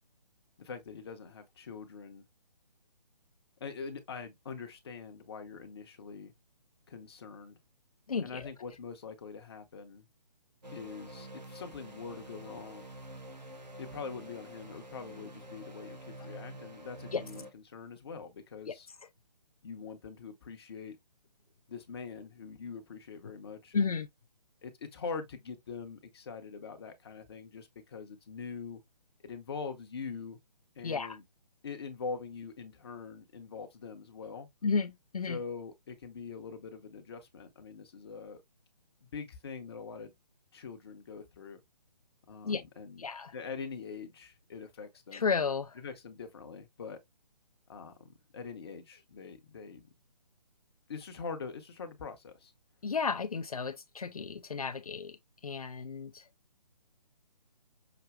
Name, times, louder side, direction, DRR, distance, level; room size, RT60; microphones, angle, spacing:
voice 1, 0.6-2.2 3.6-6.3 6.9-7.6 8.2-10.1 10.7-12.8 13.8-18.9 19.6-21.0 21.7-23.9 24.6-28.8 29.2-30.4 30.7-31.2 31.6-34.5 35.3-38.4 39.0-40.1 40.5-41.6 42.3-43.1 43.3-45.3 45.8-47.0 47.7-49.8 50.9-52.5, left 5 dB, 35° left, 0.8 m, -43 dB
voice 2, 8.1-8.5 17.1-17.2 18.7-18.8 23.7-24.1 30.8-31.2 34.6-35.4 42.4-42.6 43.0-43.3 45.1-45.8 52.8-55.2 55.4-56.2, left 5 dB, 60° left, 0.5 m, -32 dB
sound 1, 10.6-17.5, right 1 dB, 80° right, 1.4 m, -47 dB
5.9 x 2.7 x 2.2 m
figure-of-eight pair, 140°, 21 cm